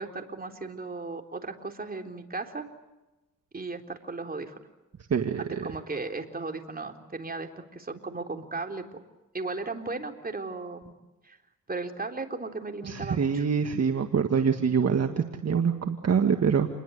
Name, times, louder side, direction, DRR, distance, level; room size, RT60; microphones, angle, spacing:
voice 1, 0.0-2.7 3.5-4.5 5.4-9.0 9.3-10.9 11.2-11.4 11.7-13.5, right 3 dB, 30° right, 4 dB, 3.9 m, -36 dB
voice 2, 5.1-5.7 12.8-16.7, right 6 dB, 55° right, 5 dB, 2.0 m, -25 dB
28.5 x 21.5 x 8.2 m, 1.1 s
cardioid pair, 75°, 31 cm